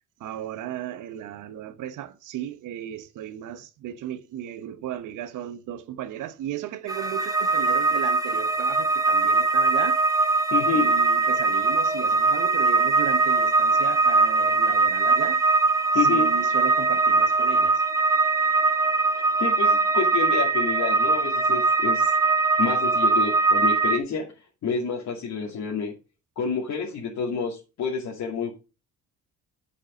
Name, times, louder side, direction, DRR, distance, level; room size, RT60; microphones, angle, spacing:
voice 1, 0.2-10.0 10.7-15.4 15.9-17.8, right 11 dB, 85° right, 1.0 m, -35 dB
sound 1, 6.9-24.0, right 3 dB, 10° right, 1.1 m, -21 dB
voice 2, 10.5-10.9 15.9-16.3 19.4-22.1 22.6-24.2 24.6-25.9 26.4-28.5, left 5 dB, 70° left, 2.6 m, -28 dB
7.6 x 7.4 x 5.1 m
cardioid pair, 90°, 30 cm